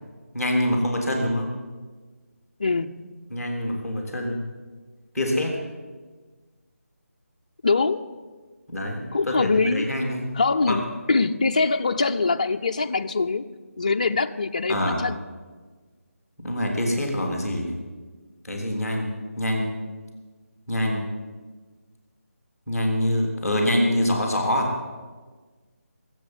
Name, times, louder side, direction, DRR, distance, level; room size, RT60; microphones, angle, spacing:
voice 1, 0.3-1.5 3.3-4.4 5.1-5.6 8.7-9.3 9.7-10.3 10.7-10.8 14.7-15.0 16.4-17.7 18.4-19.1 19.4-19.7 20.7-21.1 22.7-24.7, left 1 dB, ahead, -3 dB, 2.8 m, -25 dB
voice 2, 2.6-3.1 7.6-8.0 9.1-10.0 10.3-13.5 13.8-15.2, left 4 dB, 30° left, 6 dB, 0.5 m, -23 dB
19.0 x 8.5 x 8.0 m, 1.4 s
figure-of-eight pair, 175°, 8 cm